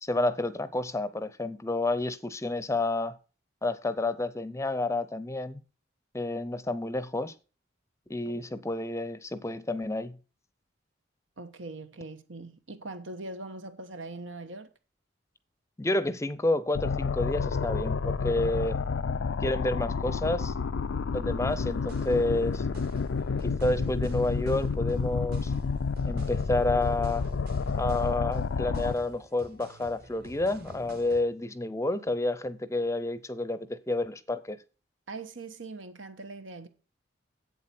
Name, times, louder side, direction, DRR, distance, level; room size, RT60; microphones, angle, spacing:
voice 1, 0.0-3.2 3.6-5.6 6.1-7.3 8.1-10.2 15.8-18.8 19.4-20.5 21.1-22.7 23.4-25.5 26.1-27.3 27.7-34.6, left 2 dB, 15° left, 0.6 m, -30 dB
voice 2, 11.4-14.7 35.1-36.7, right 2 dB, 85° right, 1.2 m, -41 dB
sound 1, 16.7-28.9, left 5 dB, 85° left, 0.5 m, -30 dB
sound 2, 21.5-31.2, right 1 dB, 55° right, 1.6 m, -50 dB
8.2 x 7.5 x 5.8 m
head